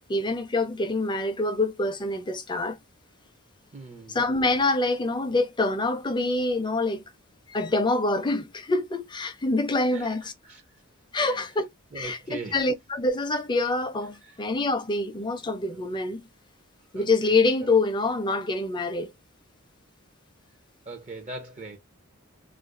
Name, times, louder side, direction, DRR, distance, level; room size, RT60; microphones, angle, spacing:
voice 1, 0.1-2.8 4.1-7.0 7.5-10.3 11.1-11.7 11.9-16.2 16.9-19.1, left 2 dB, 20° left, 0.5 m, -26 dB
voice 2, 3.7-4.2 9.9-10.6 11.1-11.5 11.9-12.6 14.2-14.4 15.7-15.9 16.9-17.3 20.9-21.8, right 3 dB, 35° right, 0.6 m, -41 dB
2.4 x 2.3 x 3.6 m
head